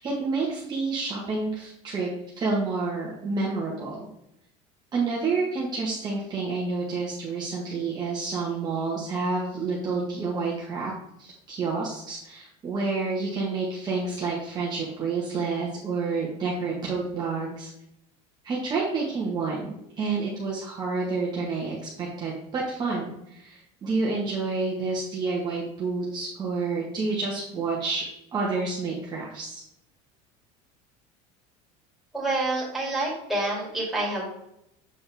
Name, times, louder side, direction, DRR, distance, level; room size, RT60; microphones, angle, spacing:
voice 1, 0.0-2.1 2.3-4.1 4.9-10.9 11.2-17.7 18.4-28.0 28.3-29.6, right 4 dB, 25° right, -4 dB, 1.5 m, -29 dB
voice 2, 32.1-34.5, right 2 dB, ahead, -5 dB, 2.7 m, -28 dB
7.6 x 5.4 x 3.5 m, 0.80 s
cardioid pair, 150°, 15 cm